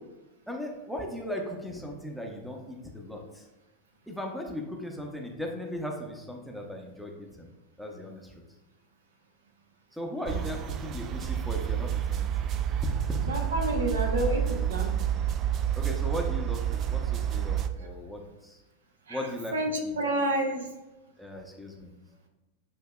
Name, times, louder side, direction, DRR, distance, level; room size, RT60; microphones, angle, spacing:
voice 1, 0.5-3.5 4.1-7.5 7.8-8.3 9.9-12.3 12.8-12.9 15.8-18.6 19.1-19.5 19.8-19.9 21.2-21.9, left 1 dB, ahead, 1 dB, 0.7 m, -37 dB
sound 1, 10.3-17.7, right 9 dB, 30° right, 0.3 m, -29 dB
voice 2, 13.3-14.9 19.1-19.2 19.5-20.7, right 1 dB, 70° right, 2 dB, 0.8 m, -29 dB
7.5 x 2.8 x 2.3 m, 1.0 s
figure-of-eight pair, 90°, 0 cm